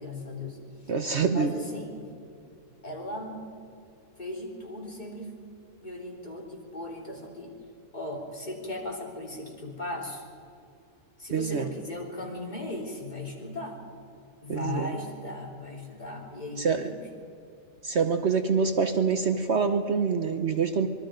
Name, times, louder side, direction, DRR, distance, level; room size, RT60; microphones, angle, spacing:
voice 1, 0.0-0.9 1.3-2.1 2.8-3.6 4.2-5.3 5.7-7.5 7.9-10.2 11.2-13.8 14.4-17.1, left 2 dB, 30° left, -2 dB, 4.0 m, -37 dB
voice 2, 0.9-1.5 11.3-11.7 14.5-14.9 16.6-16.9 17.8-20.9, right 5 dB, 55° right, 7 dB, 1.2 m, -25 dB
25.5 x 22.5 x 5.2 m, 2.5 s
omnidirectional pair, 1.5 m